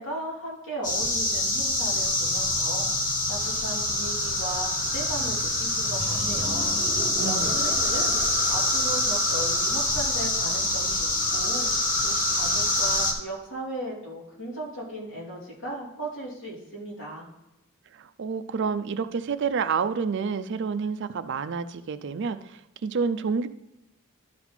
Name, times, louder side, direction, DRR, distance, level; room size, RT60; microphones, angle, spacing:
voice 1, 0.0-17.3, right 1 dB, 55° left, -5 dB, 3.1 m, -37 dB
sound 1, 0.8-13.1, left 2 dB, 35° left, 1.3 m, -25 dB
sound 2, 5.8-10.4, right 1 dB, 35° right, 2.2 m, -38 dB
voice 2, 7.2-7.6 17.9-23.5, right 5 dB, 55° right, 12 dB, 0.4 m, -29 dB
12.0 x 4.2 x 4.3 m, 0.94 s
head